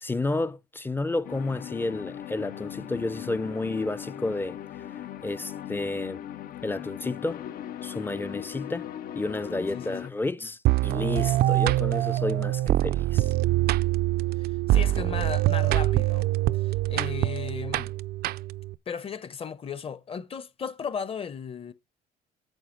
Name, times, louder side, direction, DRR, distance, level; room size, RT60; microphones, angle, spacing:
voice 1, 0.0-4.6 5.2-6.2 6.6-7.4 7.8-8.9 9.1-13.3, left 2 dB, 10° left, 0.5 m, -31 dB
sound 1, 1.2-10.1, left 10 dB, 60° left, 0.6 m, -39 dB
voice 2, 9.7-10.1 14.4-17.9 18.9-21.7, left 6 dB, 35° left, 0.9 m, -36 dB
sound 2, 10.7-18.8, right 15 dB, 65° right, 0.4 m, -24 dB
9.1 x 6.0 x 4.5 m
cardioid pair, 110°, 17 cm